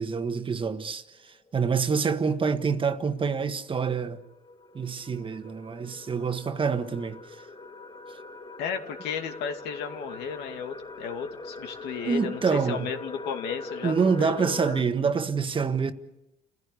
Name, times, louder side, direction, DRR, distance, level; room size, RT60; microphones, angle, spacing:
voice 1, 0.0-4.2 4.7-7.4 12.0-12.9 13.8-15.9, right 5 dB, 30° right, 1.5 m, -27 dB
sound 1, 1.4-1.5 3.0-14.8, left 3 dB, 35° left, 5.0 m, -42 dB
voice 2, 8.6-13.9 14.2-14.8, left 7 dB, 85° left, 2.4 m, -34 dB
29.5 x 16.0 x 8.4 m
cardioid pair, 110°, 17 cm